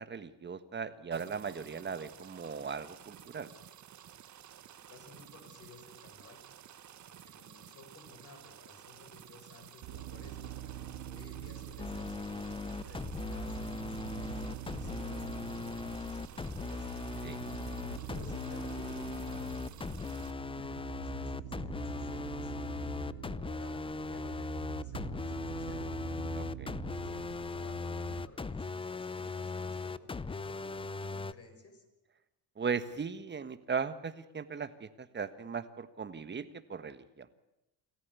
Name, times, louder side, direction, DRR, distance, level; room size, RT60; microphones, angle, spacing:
voice 1, 0.0-3.5 17.2-17.4 26.3-26.7 32.6-37.3, right 6 dB, 30° right, 12 dB, 1.5 m, -38 dB
sound 1, 1.1-20.3, right 10 dB, 50° right, 1.6 m, -53 dB
voice 2, 4.9-6.4 7.1-10.5 11.1-16.9 17.9-19.6 20.2-22.5 23.1-25.8 26.8-31.8, left 3 dB, 40° left, 5 dB, 6.1 m, -56 dB
sound 2, 9.8-28.3, right 11 dB, 90° right, 3.1 m, -45 dB
sound 3, 11.8-31.3, left 4 dB, 15° left, 0.7 m, -39 dB
27.0 x 14.5 x 8.3 m, 0.95 s
cardioid pair, 95°, 37 cm